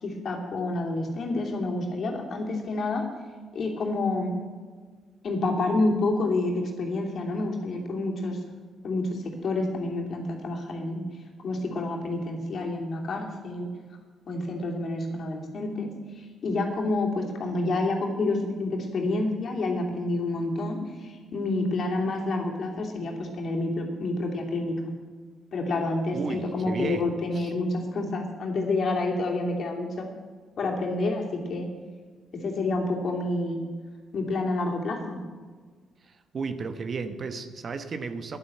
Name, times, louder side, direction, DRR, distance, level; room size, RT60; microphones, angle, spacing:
voice 1, 0.0-3.1 3.5-4.4 5.2-8.4 8.8-11.1 11.4-13.7 14.3-24.9 25.5-30.1 30.6-31.7 32.3-33.6 34.1-35.2, left 2 dB, 55° left, 1 dB, 2.8 m, -28 dB
voice 2, 26.1-27.1 27.3-27.5 36.0-38.4, right 4 dB, 45° right, 10 dB, 1.1 m, -34 dB
11.0 x 10.5 x 7.8 m, 1.5 s
cardioid pair, 90°, 0 cm